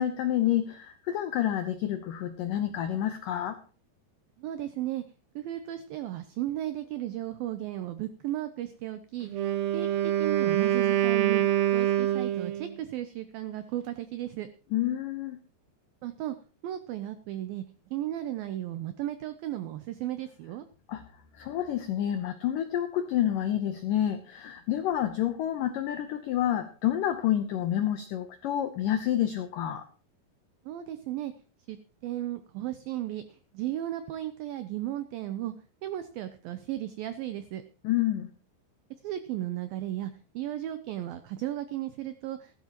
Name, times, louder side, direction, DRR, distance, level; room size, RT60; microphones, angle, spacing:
voice 1, 0.0-3.6 14.7-15.4 20.9-21.0 21.3-29.8 37.8-38.3, left 11 dB, 85° left, 9 dB, 1.9 m, -29 dB
voice 2, 4.4-5.0 5.4-9.3 9.7-9.9 10.2-11.4 11.7-14.5 16.0-16.4 16.6-17.6 17.9-20.7 30.7-31.3 31.7-31.8 32.0-33.2 33.5-35.5 35.8-37.6 39.0-42.5, right 13 dB, 90° right, 11 dB, 2.0 m, -35 dB
Wind instrument woodwind instrument, 9.3-12.8, right 13 dB, 70° right, 2.7 m, -25 dB
15.5 x 13.0 x 3.0 m, 0.37 s
omnidirectional pair, 5.1 m